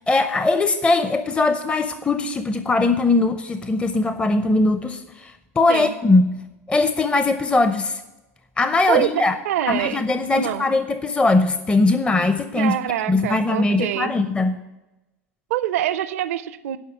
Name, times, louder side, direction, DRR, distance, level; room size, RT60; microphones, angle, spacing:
voice 1, 0.0-6.4 6.7-8.0 8.6-9.3 9.7-12.7 13.1-14.6, left 3 dB, 15° left, 10 dB, 0.6 m, -20 dB
voice 2, 9.4-10.0 10.4-10.7 12.6-14.1 15.5-16.8, right 12 dB, 70° right, 16 dB, 0.5 m, -25 dB
11.0 x 5.3 x 7.4 m, 1.0 s
hypercardioid pair, 80°, 8 cm